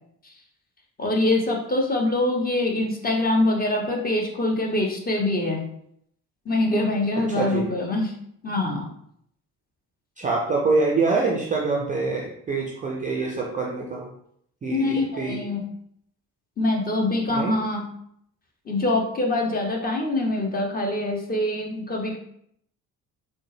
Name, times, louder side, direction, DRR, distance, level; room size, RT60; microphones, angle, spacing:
voice 1, 1.0-5.6 6.5-8.1 8.4-8.9 14.7-15.7 16.6-17.9 18.7-22.2, left 2 dB, 20° left, 1 dB, 0.7 m, -24 dB
voice 2, 7.3-7.6 10.2-14.1 14.6-15.4 17.3-17.5, right 3 dB, 20° right, -2 dB, 0.4 m, -25 dB
4.2 x 2.0 x 3.1 m, 0.70 s
figure-of-eight pair, 45°, 47 cm